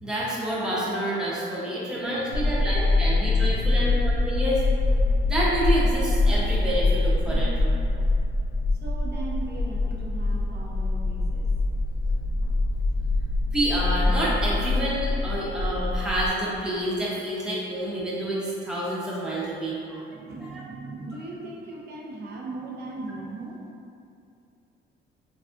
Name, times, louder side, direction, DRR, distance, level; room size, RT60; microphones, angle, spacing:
voice 1, 0.0-4.6 5.3-7.7 13.5-20.6, right 1 dB, 5° right, -7 dB, 0.6 m, -28 dB
voice 2, 1.6-4.0 4.3-4.4 8.8-11.5 20.1-23.6, right 2 dB, 55° right, -2 dB, 0.6 m, -39 dB
sound 1, 2.3-16.3, left 2 dB, 45° left, 0.5 m, -24 dB
3.3 x 2.4 x 2.4 m, 2.6 s
cardioid pair, 90°, 20 cm